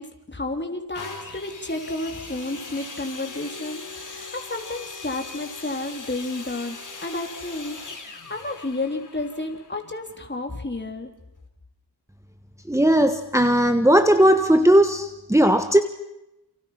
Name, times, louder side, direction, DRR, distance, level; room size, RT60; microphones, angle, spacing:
voice 1, 0.0-11.1, left 2 dB, 25° left, 3 dB, 3.5 m, -31 dB
sound 1, 0.9-10.6 11.4-11.5, left 3 dB, 50° left, 3.7 m, -40 dB
voice 2, 12.7-15.8, right 1 dB, 5° right, 7 dB, 1.4 m, -17 dB
29.0 x 29.0 x 5.8 m, 0.88 s
wide cardioid pair, 70°, 41 cm